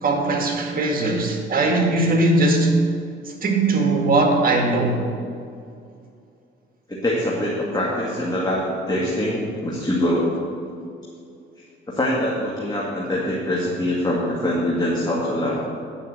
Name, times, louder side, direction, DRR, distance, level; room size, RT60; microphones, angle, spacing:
voice 1, 0.0-2.8 3.4-5.0, right 2 dB, 45° right, 2 dB, 1.9 m, -19 dB
voice 2, 6.9-10.3 11.9-15.6, left 1 dB, 20° left, -5 dB, 2.0 m, -23 dB
9.6 x 5.4 x 8.1 m, 2.4 s
cardioid pair, 90°, 20 cm